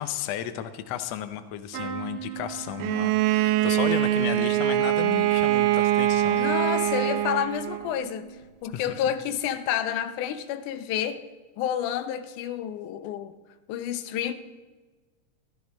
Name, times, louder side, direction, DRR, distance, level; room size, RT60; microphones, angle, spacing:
voice 1, 0.0-6.8 8.7-8.8, left 10 dB, 70° left, 1.7 m, -34 dB
sound 1, 1.7-9.6 10.0-10.6 11.8-12.0 12.2-12.3, right 8 dB, 60° right, 1.8 m, -43 dB
Bowed string instrument, 2.8-7.9, right 13 dB, 85° right, 2.1 m, -23 dB
voice 2, 6.3-8.3 8.6-11.3 11.6-13.3 13.7-14.3, left 10 dB, 90° left, 2.3 m, -29 dB
15.0 x 14.0 x 4.1 m
omnidirectional pair, 3.5 m